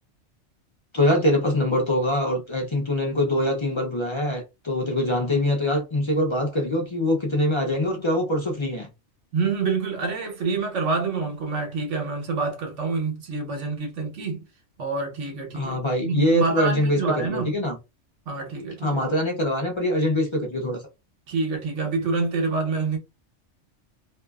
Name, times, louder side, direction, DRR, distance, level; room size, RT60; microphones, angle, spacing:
voice 1, 0.9-8.9 15.5-17.8 18.8-20.8, left 1 dB, 40° left, 0.4 m, -23 dB
voice 2, 9.3-14.4 14.8-17.6 18.3-19.0 21.3-23.0, right 4 dB, 80° right, 1.2 m, -27 dB
2.5 x 2.4 x 2.3 m
omnidirectional pair, 1.2 m